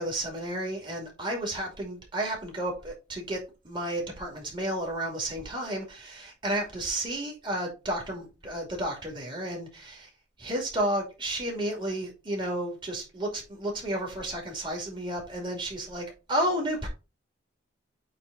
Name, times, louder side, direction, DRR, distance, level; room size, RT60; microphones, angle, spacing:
voice 1, 0.0-3.4 3.6-10.1 10.4-16.9, right 1 dB, 25° right, 2.5 m, -32 dB
8.5 x 3.4 x 4.0 m
head